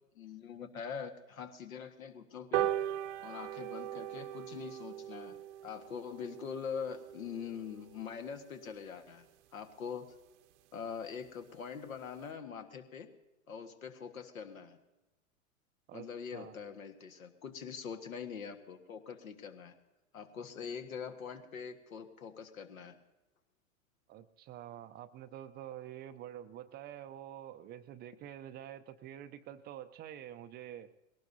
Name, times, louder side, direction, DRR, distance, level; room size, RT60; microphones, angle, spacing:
voice 1, 0.1-2.7 3.2-5.4 5.6-9.3 9.5-10.1 10.7-13.1 13.5-14.8 15.9-19.7 20.1-23.0, left 6 dB, 75° left, 7 dB, 1.7 m, -43 dB
sound 1, 2.5-9.3 9.7-9.8 10.1-10.2 10.5-10.6 10.9-11.0 11.3-11.5 12.0-12.1, right 12 dB, 60° right, 0.8 m, -39 dB
voice 2, 15.9-16.6 24.1-30.9, right 11 dB, 25° right, 11 dB, 0.5 m, -47 dB
21.0 x 18.0 x 2.7 m, 1.0 s
hypercardioid pair, 105°, 41 cm